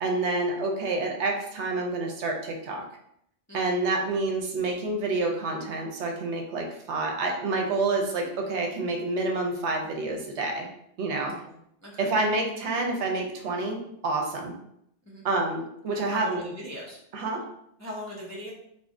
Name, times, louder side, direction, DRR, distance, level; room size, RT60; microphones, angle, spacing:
voice 1, 0.0-2.8 3.5-10.7 11.0-11.3 12.0-14.5 15.2-16.4 17.1-17.4, right 2 dB, 85° right, 2 dB, 1.0 m, -28 dB
voice 2, 11.3-11.6 11.8-12.1 15.1-15.3 15.9-17.0 17.8-18.5, equal, 25° left, -4 dB, 0.4 m, -39 dB
3.7 x 2.0 x 3.6 m, 0.75 s
omnidirectional pair, 1.2 m